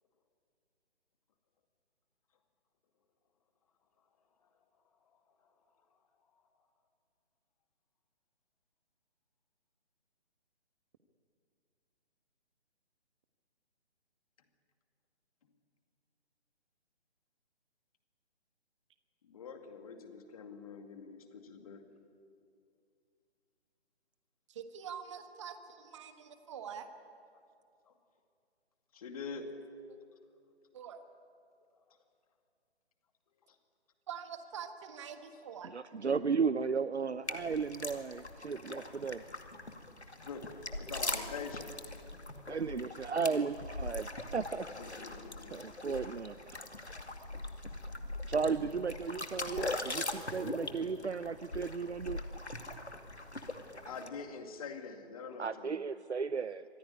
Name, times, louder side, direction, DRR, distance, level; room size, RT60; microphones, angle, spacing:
voice 1, 5.1-5.5 6.3-6.4 19.2-21.9 27.9-28.0 28.9-29.5 33.5-33.6 40.2-41.8 44.8-45.6 53.9-55.8, left 5 dB, 35° left, 6 dB, 2.3 m, -45 dB
voice 2, 24.5-26.9 30.7-31.0 34.1-35.7, right 7 dB, 25° right, 8 dB, 1.3 m, -45 dB
voice 3, 35.6-39.2 42.5-44.7 45.5-46.4 48.3-52.2 55.4-56.7, right 5 dB, 85° right, 14 dB, 0.7 m, -34 dB
sound 1, 37.2-54.1, left 2 dB, 85° left, 2.4 m, -41 dB
25.5 x 17.0 x 9.9 m, 2.4 s
figure-of-eight pair, 145°, 33 cm